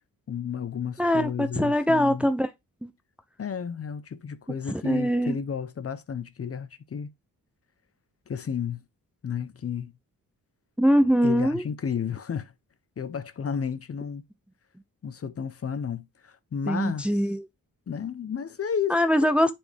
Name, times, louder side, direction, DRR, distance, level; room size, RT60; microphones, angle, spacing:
voice 1, 0.3-2.3 3.4-7.1 8.3-8.8 9.2-9.9 11.2-12.5 13.0-14.2 15.0-17.1 17.9-19.0, left 7 dB, 40° left, 0.7 m, -32 dB
voice 2, 1.0-2.5 2.8-2.9 4.7-5.4 10.8-11.6 16.7-17.5 18.9-19.5, equal, 5° right, 0.6 m, -22 dB
7.7 x 4.4 x 3.4 m
cardioid pair, 80°, 36 cm